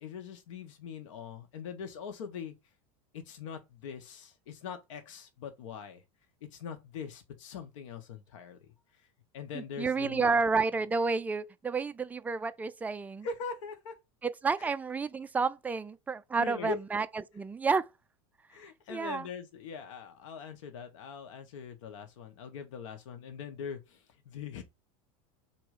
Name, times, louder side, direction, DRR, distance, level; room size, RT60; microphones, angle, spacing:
voice 1, 0.0-2.5 3.1-6.0 6.5-8.7 9.3-10.4 13.2-13.9 14.6-14.7 16.4-16.8 18.5-24.6, left 6 dB, 85° left, 1.2 m, -42 dB
voice 2, 9.5-13.3 14.2-17.9 18.9-19.3, right 4 dB, 10° right, 0.3 m, -30 dB
3.7 x 2.9 x 4.9 m
supercardioid pair, 115°, 16 cm